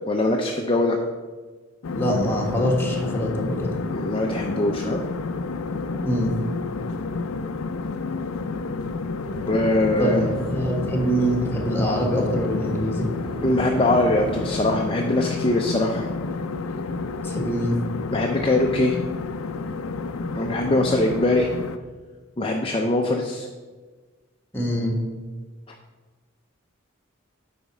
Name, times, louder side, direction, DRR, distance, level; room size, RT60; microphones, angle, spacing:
voice 1, 0.1-1.0 3.9-5.0 9.5-10.2 13.4-16.1 18.1-19.0 20.3-21.5 22.4-23.5, left 2 dB, 25° left, 2 dB, 0.6 m, -22 dB
sound 1, 1.8-21.8, left 3 dB, 90° left, 0.5 m, -30 dB
voice 2, 1.9-3.7 6.0-6.3 10.0-10.2 10.5-13.1 17.2-17.8 24.5-24.9, equal, 10° left, -1 dB, 1.5 m, -24 dB
sound 2, 9.2-14.7, equal, 45° right, 2.3 m, -35 dB
9.3 x 4.3 x 6.1 m, 1.4 s
head